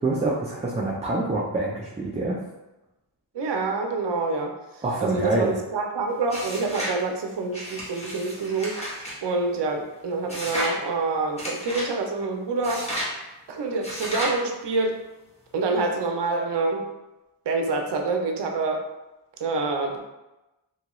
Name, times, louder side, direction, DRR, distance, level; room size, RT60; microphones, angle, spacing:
voice 1, 0.0-2.4 4.8-5.5, right 2 dB, 15° right, -5 dB, 0.4 m, -26 dB
voice 2, 3.3-8.8 9.2-12.9 13.5-15.0 15.5-16.9 17.5-18.8 19.4-20.0, right 3 dB, 65° right, 3 dB, 0.6 m, -27 dB
turn the page, 6.3-7.0 7.5-9.2 10.3-10.8 11.4-11.9 12.6-13.1 13.8-14.4, equal, 15° left, 0.9 m, -32 dB
2.8 x 2.3 x 2.9 m, 1.0 s
wide cardioid pair, 80°, 45 cm